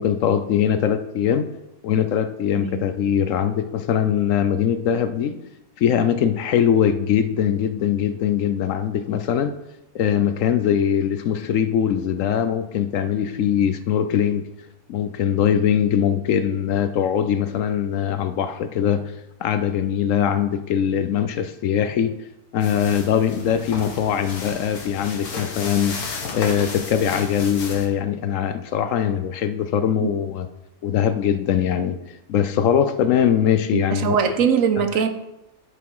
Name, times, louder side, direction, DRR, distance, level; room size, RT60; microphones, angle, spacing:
voice 1, 0.0-1.5 1.8-5.4 5.8-9.6 9.9-14.4 14.9-19.1 19.4-22.1 22.5-26.0 26.3-30.5 30.8-32.0 32.3-34.2, left 9 dB, 70° left, 10 dB, 0.9 m, -21 dB
sound 1, 22.6-27.9, left 4 dB, 85° left, 1.8 m, -33 dB
voice 2, 33.7-35.1, right 7 dB, 65° right, 8 dB, 1.2 m, -21 dB
11.0 x 6.0 x 4.7 m, 0.92 s
omnidirectional pair, 1.5 m